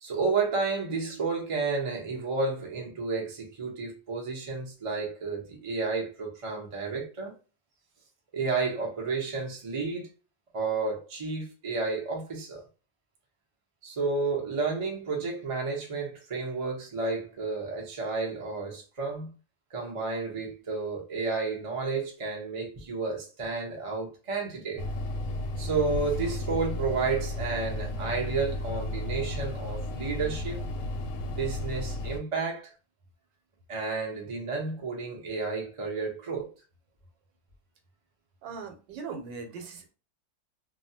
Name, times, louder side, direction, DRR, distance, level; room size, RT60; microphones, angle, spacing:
voice 1, 0.0-7.3 8.3-10.1 10.5-12.6 13.8-19.3 19.7-24.8 25.6-30.6 31.3-32.7 33.7-36.5, right 4 dB, 45° right, 0.4 m, -31 dB
sound 1, 24.8-32.2, left 1 dB, 80° left, 1.2 m, -33 dB
voice 2, 38.4-39.9, right 5 dB, 85° right, 1.3 m, -40 dB
2.9 x 2.2 x 2.7 m
omnidirectional pair, 1.9 m